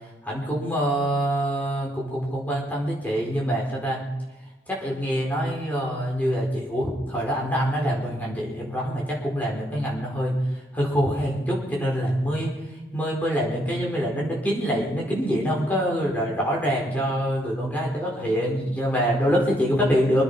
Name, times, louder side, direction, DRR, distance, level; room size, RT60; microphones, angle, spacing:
voice 1, 0.2-4.0 4.7-10.3 10.7-12.5 12.9-20.2, equal, 10° left, -2 dB, 4.7 m, -25 dB
25.5 x 9.8 x 5.6 m, 1.1 s
head